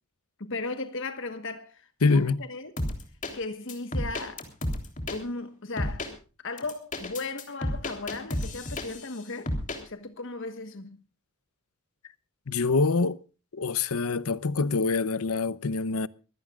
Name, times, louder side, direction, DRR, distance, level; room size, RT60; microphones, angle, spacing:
voice 1, 0.4-2.7 3.3-4.5 5.1-6.1 6.4-9.5 9.8-11.0, left 3 dB, 55° left, 1.4 m, -36 dB
voice 2, 2.0-2.4 12.5-13.2 13.5-16.1, left 4 dB, 75° left, 0.8 m, -25 dB
sound 1, 2.8-3.3 3.7-5.2 5.8-6.1 6.6-9.1 9.5-9.8, left 1 dB, 35° left, 3.3 m, -31 dB
24.0 x 16.5 x 2.4 m
head